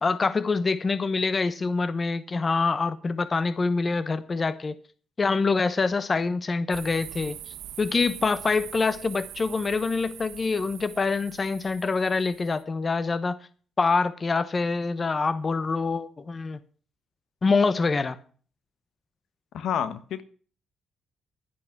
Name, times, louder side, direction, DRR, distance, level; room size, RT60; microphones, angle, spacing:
voice 1, 0.0-4.7 5.2-13.4 13.8-16.6 17.4-18.2, left 4 dB, 30° left, 1.0 m, -25 dB
sound 1, 6.7-12.6, right 11 dB, 85° right, 1.3 m, -43 dB
voice 2, 19.5-20.2, left 8 dB, 75° left, 1.3 m, -29 dB
11.5 x 10.5 x 6.0 m
cardioid pair, 90°, 0 cm